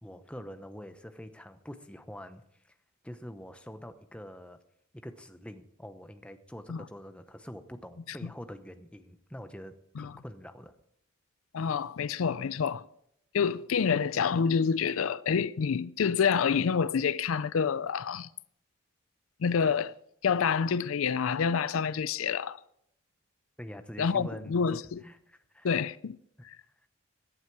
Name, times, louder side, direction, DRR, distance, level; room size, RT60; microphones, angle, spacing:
voice 1, 0.0-2.8 3.0-4.6 4.9-10.7 23.6-25.7 26.4-26.5 26.8-26.9, equal, 5° left, 0.8 m, -45 dB
voice 2, 11.5-12.8 13.3-18.3 19.4-19.9 20.2-22.6 24.0-25.0 25.6-26.2 26.4-26.6, left 6 dB, 85° left, 0.4 m, -28 dB
17.0 x 11.5 x 4.7 m
head